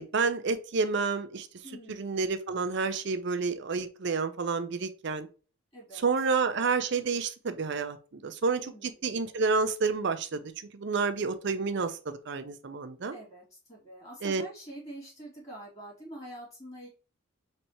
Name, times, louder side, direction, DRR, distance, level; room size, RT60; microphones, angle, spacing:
voice 1, 0.0-1.5 1.9-5.3 6.0-13.2 14.2-14.4, right 4 dB, 55° right, 0.5 m, -29 dB
voice 2, 1.6-2.1 5.7-6.3 8.6-9.0 13.1-16.9, right 1 dB, 30° left, 2.2 m, -46 dB
4.2 x 3.3 x 2.9 m
head